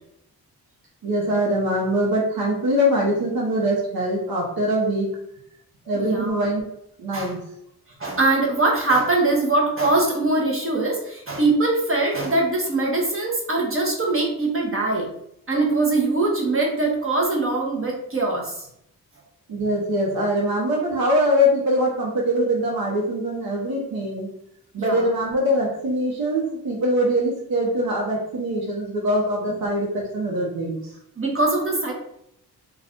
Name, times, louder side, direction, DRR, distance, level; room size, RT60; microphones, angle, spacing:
voice 1, 1.0-5.1 5.9-6.6 7.0-7.4 19.5-24.3 24.7-30.8, equal, 70° right, -2 dB, 0.8 m, -23 dB
voice 2, 5.9-6.5 7.1-7.3 8.0-15.1 15.5-18.7 24.8-25.1 29.5-29.6 31.2-31.9, right 2 dB, 35° right, -2 dB, 0.8 m, -22 dB
2.5 x 2.3 x 3.5 m, 0.76 s
cardioid pair, 65°, 37 cm